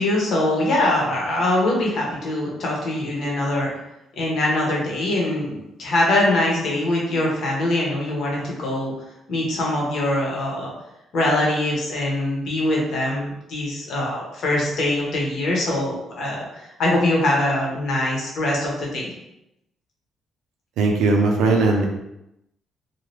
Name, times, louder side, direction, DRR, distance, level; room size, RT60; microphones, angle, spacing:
voice 1, 0.0-3.7 4.2-8.9 9.3-10.7 11.1-19.1, left 1 dB, 70° left, -3 dB, 1.0 m, -23 dB
voice 2, 20.8-21.9, right 3 dB, 90° right, 2 dB, 0.5 m, -18 dB
2.7 x 2.3 x 3.2 m, 0.86 s
cardioid pair, 90°, 0 cm